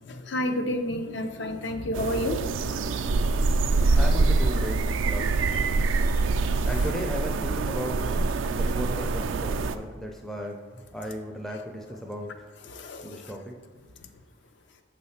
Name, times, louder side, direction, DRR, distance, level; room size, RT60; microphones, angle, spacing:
voice 1, 0.1-3.7 5.5-5.6 12.7-13.4, left 1 dB, 60° left, 7 dB, 0.5 m, -32 dB
sound 1, 1.9-9.8, right 3 dB, 75° right, 0.3 m, -25 dB
voice 2, 3.9-5.5 6.7-12.4 13.0-13.5, equal, ahead, 1 dB, 0.4 m, -35 dB
6.2 x 3.3 x 5.6 m, 1.3 s
head